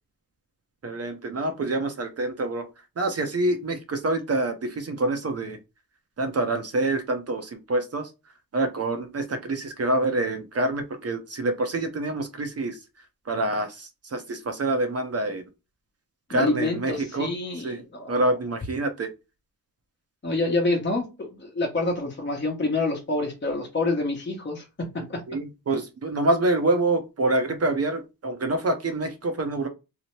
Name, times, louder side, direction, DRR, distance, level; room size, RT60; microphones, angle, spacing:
voice 1, 0.8-2.7 3.0-5.6 6.2-8.1 8.5-12.8 13.3-15.4 16.3-17.8 18.1-19.1 25.3-29.7, right 2 dB, 45° right, 0.6 m, -26 dB
voice 2, 16.3-18.3 20.2-24.6 24.9-25.2, left 2 dB, 30° left, 0.9 m, -27 dB
2.8 x 2.0 x 3.0 m
cardioid pair, 55°, 36 cm